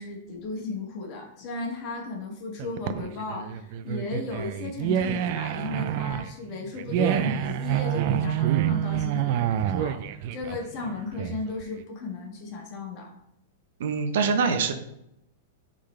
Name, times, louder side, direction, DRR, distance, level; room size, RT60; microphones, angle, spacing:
voice 1, 0.0-13.1, left 3 dB, 35° left, 0 dB, 1.6 m, -35 dB
sound 1, 2.6-11.6, right 11 dB, 45° right, 0.4 m, -27 dB
voice 2, 13.8-14.7, right 5 dB, 70° right, 7 dB, 0.9 m, -24 dB
9.9 x 3.9 x 3.3 m, 0.80 s
supercardioid pair, 165°, 0 cm